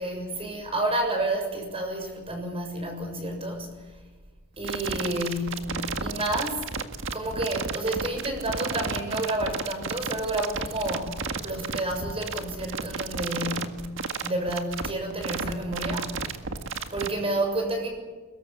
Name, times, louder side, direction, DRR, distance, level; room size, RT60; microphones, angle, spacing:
voice 1, 0.0-3.8 4.6-6.7 7.0-13.9 14.2-16.4 16.9-17.9, right 1 dB, 25° right, 4 dB, 7.1 m, -30 dB
sound 1, 4.6-17.1, right 4 dB, 65° right, 1.9 m, -32 dB
24.0 x 22.0 x 8.7 m, 1.3 s
head